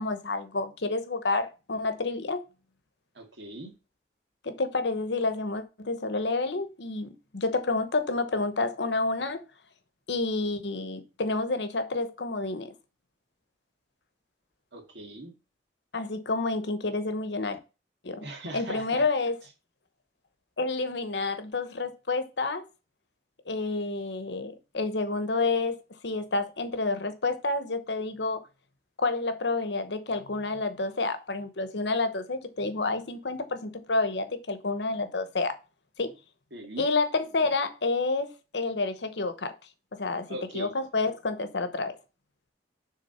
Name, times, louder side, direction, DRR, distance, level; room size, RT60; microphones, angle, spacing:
voice 1, 0.0-2.4 4.4-9.4 10.1-12.7 15.9-17.6 18.0-18.2 18.5-19.3 20.6-22.6 23.5-25.8 26.0-28.4 29.0-35.6 36.0-36.1 36.8-39.6 40.0-40.3 40.5-42.0, left 3 dB, 70° left, 0.9 m, -29 dB
voice 2, 3.1-3.7 14.7-15.3 18.2-19.0 36.5-36.9 40.3-40.7, right 1 dB, 75° right, 2.0 m, -40 dB
6.5 x 3.7 x 5.6 m
head